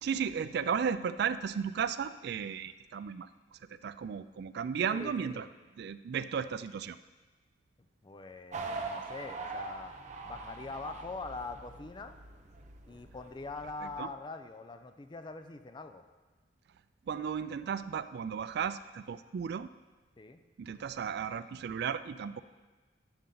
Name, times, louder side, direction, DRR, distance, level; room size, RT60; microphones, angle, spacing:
voice 1, 0.0-5.5 5.8-7.0 13.8-14.1 17.1-19.7 20.6-22.4, right 7 dB, 65° right, 14 dB, 0.3 m, -35 dB
voice 2, 4.9-5.5 8.0-9.9 10.2-12.1 12.9-16.0 20.2-20.4, left 3 dB, 25° left, 8 dB, 0.5 m, -43 dB
sound 1, 8.5-14.0, right 3 dB, 40° right, 0.8 m, -43 dB
11.5 x 6.9 x 3.9 m, 1.3 s
head